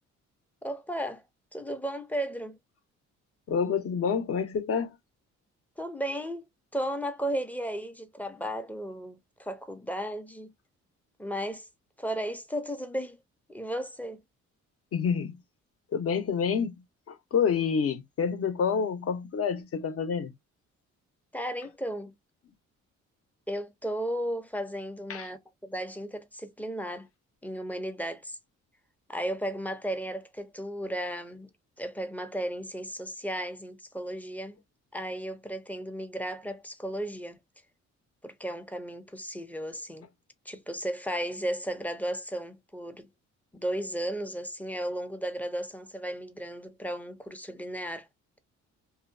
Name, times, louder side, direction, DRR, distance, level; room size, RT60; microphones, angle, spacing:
voice 1, 0.6-1.2 1.5-2.6 5.8-6.5 6.7-10.5 11.2-11.7 12.0-13.2 13.5-14.2 21.3-22.1 23.5-27.1 27.4-28.4 29.1-31.5 31.8-34.6 34.9-37.4 38.2-40.1 40.5-43.1 43.5-48.1, right 1 dB, 5° left, 0.5 m, -34 dB
voice 2, 3.5-5.0 14.9-15.4 15.9-16.7 17.1-20.3 25.1-25.3, left 6 dB, 50° left, 0.7 m, -28 dB
2.7 x 2.0 x 2.5 m
cardioid pair, 90°, 30 cm